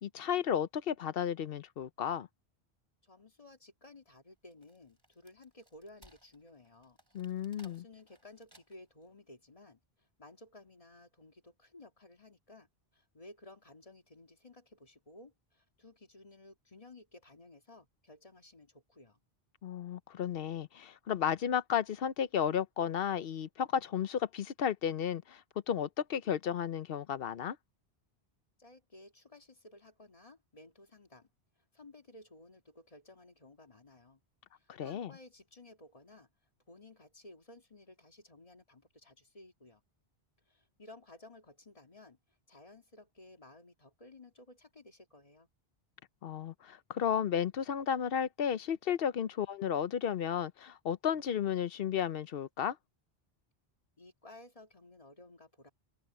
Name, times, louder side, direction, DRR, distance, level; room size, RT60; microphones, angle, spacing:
voice 1, 0.0-2.3 7.1-7.8 19.6-25.4 25.7-27.6 34.7-35.1 46.2-52.8, left 8 dB, 70° left, 0.9 m, -33 dB
voice 2, 3.0-7.0 7.6-19.2 28.6-31.3 31.7-34.2 34.5-36.3 36.7-39.8 40.5-42.2 42.5-45.5 54.0-55.7, left 2 dB, 35° left, 2.1 m, -56 dB
Wood, 4.3-9.0, right 1 dB, 20° right, 5.3 m, -64 dB
open air
omnidirectional pair, 1.0 m